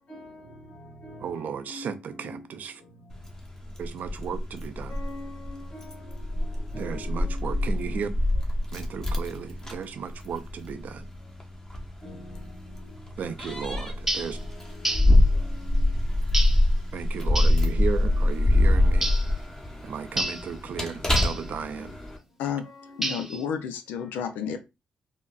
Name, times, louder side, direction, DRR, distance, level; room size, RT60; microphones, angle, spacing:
voice 1, 0.1-3.2 3.8-4.0 4.9-8.2 12.0-16.1 17.1-17.4 19.0-19.1 21.0-21.4 22.6-23.1 24.0-24.1, left 1 dB, 55° left, 1.7 m, -46 dB
voice 2, 1.2-2.7 3.8-5.0 6.7-8.1 8.7-11.1 13.2-14.4 16.9-19.1 19.8-22.0, right 6 dB, 65° right, 0.4 m, -35 dB
Keys jangling, 3.1-22.2, left 1 dB, 20° left, 1.0 m, -25 dB
sound 1, 14.1-14.4 14.8-15.2 16.3-16.7 17.4-17.6 19.0-19.3 20.2-20.5 21.2-21.5 23.0-23.4, right 1 dB, 10° right, 0.8 m, -29 dB
voice 3, 23.0-24.6, left 7 dB, 85° left, 0.4 m, -31 dB
3.6 x 2.1 x 2.3 m
supercardioid pair, 55°, 3 cm